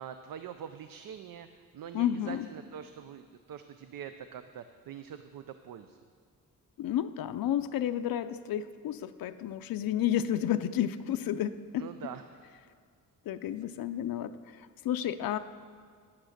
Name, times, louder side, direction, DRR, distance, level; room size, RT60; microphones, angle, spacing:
voice 1, 0.0-1.5 1.7-6.0 11.8-12.4, right 8 dB, 75° right, 9 dB, 0.5 m, -44 dB
voice 2, 1.9-2.5 6.8-11.9 13.3-15.4, left 11 dB, 85° left, 10 dB, 0.5 m, -31 dB
10.5 x 8.8 x 6.5 m, 2.1 s
wide cardioid pair, 140°, 34 cm